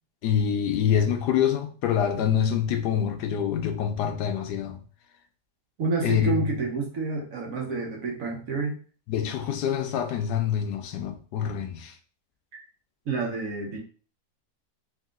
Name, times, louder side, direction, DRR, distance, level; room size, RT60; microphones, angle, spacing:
voice 1, 0.2-4.8 6.0-6.4 9.1-12.0, left 9 dB, 80° left, 1.2 m, -26 dB
voice 2, 5.8-8.8 12.5-12.6 13.1-13.8, right 4 dB, 60° right, 1.2 m, -29 dB
3.7 x 2.7 x 3.7 m
omnidirectional pair, 1.8 m